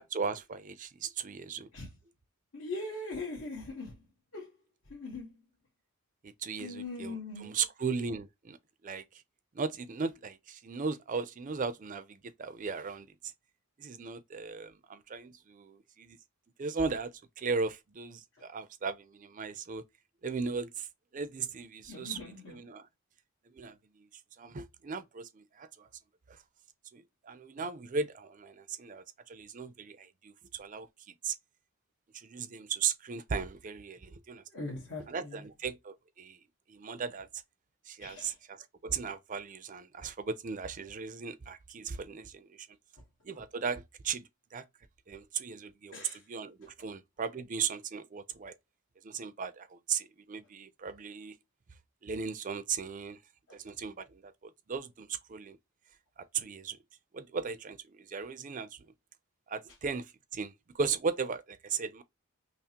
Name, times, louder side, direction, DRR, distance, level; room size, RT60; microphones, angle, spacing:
voice 1, 0.0-1.7 6.2-8.6 8.8-9.0 9.5-13.1 13.8-16.2 16.6-19.8 20.2-20.9 21.1-22.2 22.5-22.9 23.5-24.1 24.4-25.9 26.3-26.4 26.9-30.9 31.2-31.3 32.1-34.4 35.1-36.4 36.7-37.3 37.9-42.7 43.2-44.2 44.5-44.7 45.1-48.6 49.0-51.4 52.0-53.2 53.5-55.6 56.3-56.8 57.1-58.8 59.5-62.0, right 5 dB, 35° right, 0.4 m, -37 dB
voice 2, 2.5-4.0 4.3-4.6 4.9-5.4 6.6-7.6 18.3-18.4 21.9-22.6 34.5-35.5 38.0-38.4 45.9-46.3 53.5-53.6, left 3 dB, 65° left, 1.3 m, -41 dB
5.6 x 2.0 x 2.8 m
head